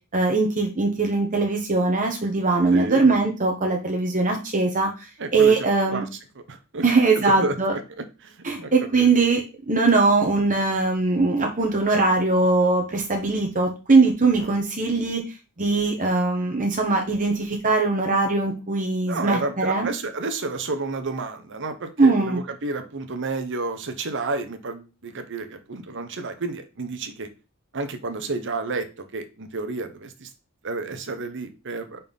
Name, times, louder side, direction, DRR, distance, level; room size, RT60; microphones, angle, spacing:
voice 1, 0.1-6.0 6.8-7.7 8.4-15.2 15.6-19.9 22.0-22.4, right 3 dB, 40° right, 2 dB, 1.2 m, -21 dB
voice 2, 2.7-3.1 5.2-6.1 6.4-6.8 7.1-7.8 8.2-8.7 9.0-9.1 14.4-14.6 19.1-27.3 27.7-30.3 30.6-32.0, right 3 dB, 60° right, 9 dB, 1.0 m, -31 dB
5.5 x 4.4 x 5.4 m, 0.31 s
head